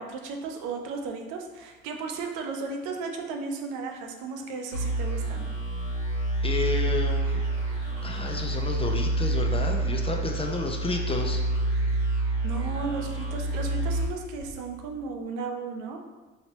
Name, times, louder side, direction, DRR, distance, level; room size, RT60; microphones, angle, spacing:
voice 1, 0.0-5.5 12.4-16.0, right 4 dB, 80° right, 3 dB, 0.5 m, -35 dB
sound 1, 4.7-15.0, right 2 dB, 75° left, 1.4 m, -28 dB
voice 2, 6.4-7.4 8.0-11.4, left 3 dB, 20° left, 2 dB, 0.4 m, -31 dB
2.9 x 2.9 x 2.8 m, 1.2 s
supercardioid pair, 65°, 30 cm